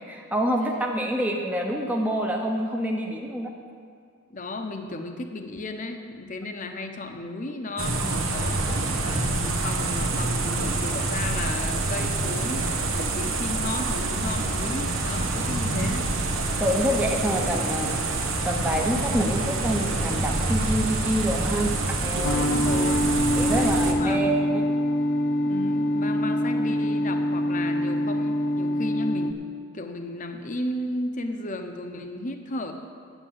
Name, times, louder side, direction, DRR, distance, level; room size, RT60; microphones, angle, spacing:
voice 1, 0.1-3.5 15.6-15.9 16.6-22.5 23.4-24.6, equal, 10° right, 0 dB, 0.8 m, -27 dB
voice 2, 4.3-12.7 12.9-16.1 22.4-23.1 23.4-24.3 25.4-29.4 29.7-32.7, left 2 dB, 40° left, 5 dB, 0.8 m, -34 dB
sound 1, 7.8-23.9, right 2 dB, 85° right, 1.2 m, -26 dB
sound 2, 22.2-29.3, equal, 65° left, 0.6 m, -24 dB
8.8 x 8.1 x 7.5 m, 2.2 s
head